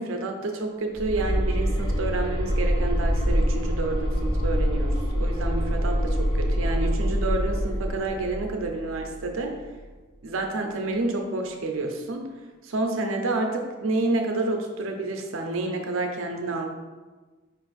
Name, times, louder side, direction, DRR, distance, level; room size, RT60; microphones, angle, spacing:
voice 1, 0.0-9.6 10.2-12.3 12.6-16.7, right 2 dB, 70° right, 3 dB, 0.5 m, -29 dB
sound 1, 1.0-9.9, equal, 20° left, 0.7 m, -25 dB
4.8 x 2.5 x 4.0 m, 1.3 s
head